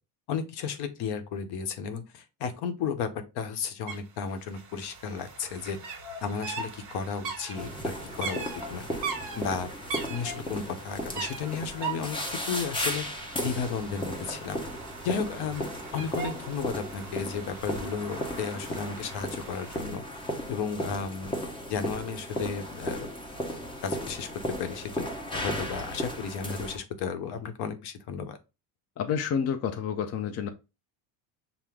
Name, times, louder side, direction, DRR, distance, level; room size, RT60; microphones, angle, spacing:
voice 1, 0.3-3.1 3.3-5.8 6.2-8.4 8.7-8.9 9.4-9.7 10.1-12.2 12.5-14.6 15.0-23.1 23.8-28.4, left 6 dB, 60° left, 0.9 m, -34 dB
sound 1, 3.9-4.0 4.2-19.8, right 5 dB, 45° right, 1.4 m, -40 dB
sound 2, 7.5-26.8, equal, 10° left, 0.8 m, -36 dB
voice 2, 29.0-30.5, left 7 dB, 35° left, 0.5 m, -29 dB
5.9 x 2.1 x 3.5 m
cardioid pair, 120°, 44 cm